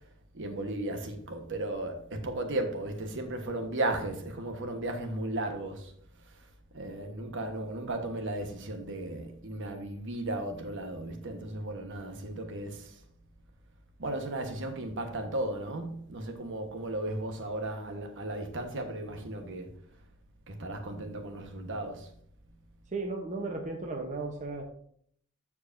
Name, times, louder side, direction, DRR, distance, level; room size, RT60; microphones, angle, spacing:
voice 1, 0.3-5.9 6.3-6.5 6.7-13.0 14.0-19.7 20.5-22.1, right 1 dB, 60° right, 1.2 m, -35 dB
voice 2, 22.9-24.6, right 3 dB, 35° right, 0.8 m, -35 dB
14.0 x 4.8 x 2.6 m
head